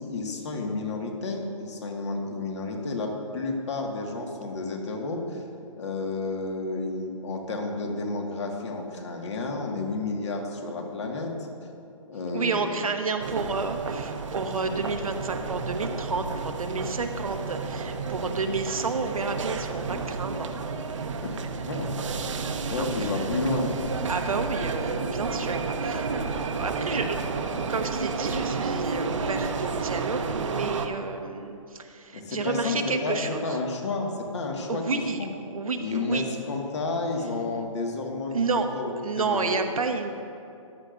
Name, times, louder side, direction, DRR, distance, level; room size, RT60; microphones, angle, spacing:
voice 1, 0.0-5.4 5.8-11.3 12.1-12.8 21.7-22.0 22.4-23.7 32.1-35.3 35.8-39.5, left 3 dB, 55° left, 1 dB, 1.8 m, -31 dB
voice 2, 12.3-20.5 22.3-23.1 24.1-27.2 27.7-33.6 34.7-36.2 38.3-38.7 39.0-40.1, right 4 dB, 85° right, 5 dB, 1.0 m, -30 dB
sound 1, 13.2-30.9, right 4 dB, 60° right, 0.9 m, -31 dB
14.5 x 10.5 x 2.6 m, 2.6 s
hypercardioid pair, 145°, 18 cm